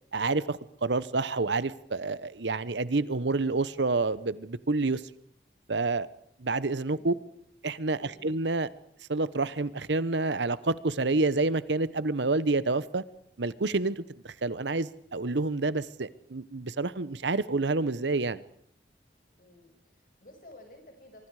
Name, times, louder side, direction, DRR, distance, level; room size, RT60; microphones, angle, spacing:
voice 1, 0.1-5.0 5.7-6.1 6.4-7.1 7.6-8.7 9.1-13.0 13.4-18.4, right 3 dB, 85° right, 17 dB, 1.0 m, -28 dB
voice 2, 6.8-7.2 7.8-8.2 19.4-21.3, left 1 dB, 50° left, 4 dB, 6.5 m, -53 dB
25.0 x 24.0 x 4.9 m, 0.67 s
head